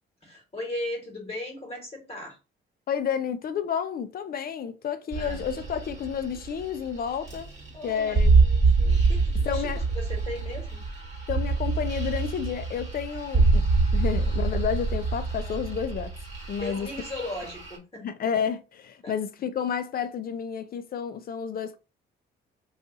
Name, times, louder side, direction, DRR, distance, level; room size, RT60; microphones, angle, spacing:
voice 1, 0.2-2.4 5.2-5.4 7.7-10.8 16.6-18.1 19.0-19.2, left 1 dB, 30° left, 1.3 m, -37 dB
voice 2, 2.9-7.5 7.8-8.3 9.5-9.8 11.3-13.6 13.9-16.1 16.5-16.9 18.0-21.8, left 7 dB, 50° left, 0.4 m, -30 dB
sound 1, 5.1-17.8, right 3 dB, 35° right, 1.3 m, -25 dB
2.6 x 2.4 x 3.7 m
cardioid pair, 90°, 20 cm